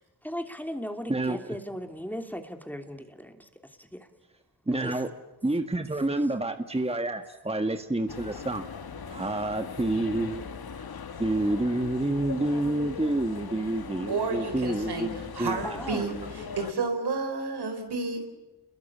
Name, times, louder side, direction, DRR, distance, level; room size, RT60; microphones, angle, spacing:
voice 1, 0.2-3.5 3.8-4.1 4.8-4.9 15.6-16.1, equal, 5° left, 6 dB, 3.0 m, -37 dB
voice 2, 1.1-1.6 4.7-5.1 5.4-8.7 9.1-10.5 11.2-15.7 15.9-16.3 16.5-16.7, right 2 dB, 15° right, 7 dB, 1.8 m, -28 dB
sound 1, 8.1-16.7, left 6 dB, 65° left, 1.9 m, -40 dB
voice 3, 14.1-18.3, right 4 dB, 80° right, 6 dB, 4.6 m, -31 dB
29.0 x 22.0 x 8.6 m, 1.1 s
cardioid pair, 50°, 39 cm